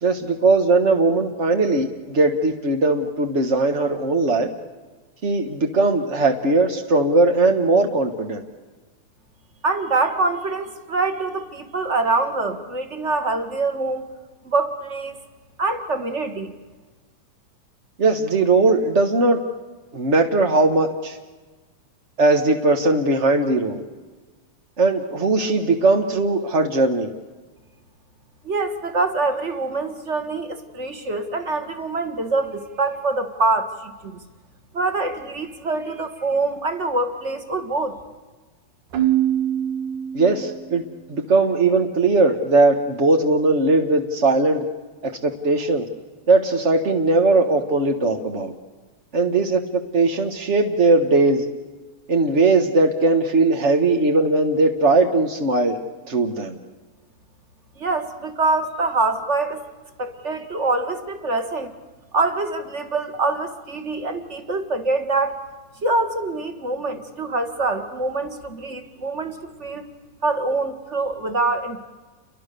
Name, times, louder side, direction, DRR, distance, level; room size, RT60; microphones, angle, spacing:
voice 1, 0.0-4.5 5.2-8.4 18.0-19.4 19.9-21.2 22.2-23.8 24.8-27.1 40.1-40.8 41.1-44.7 45.0-45.8 46.3-48.5 49.1-51.4 52.1-55.8 56.1-56.6, right 3 dB, 45° right, 4 dB, 0.9 m, -19 dB
voice 2, 9.6-14.1 14.4-15.2 15.6-16.5 28.4-34.2 34.7-38.0 57.7-59.6 60.0-61.7 62.1-65.4 65.8-69.8 70.2-71.8, right 3 dB, 30° right, 8 dB, 1.7 m, -24 dB
Keyboard (musical), 38.9-40.8, right 11 dB, 85° right, 3.1 m, -23 dB
29.5 x 23.0 x 6.8 m, 1.3 s
omnidirectional pair, 3.5 m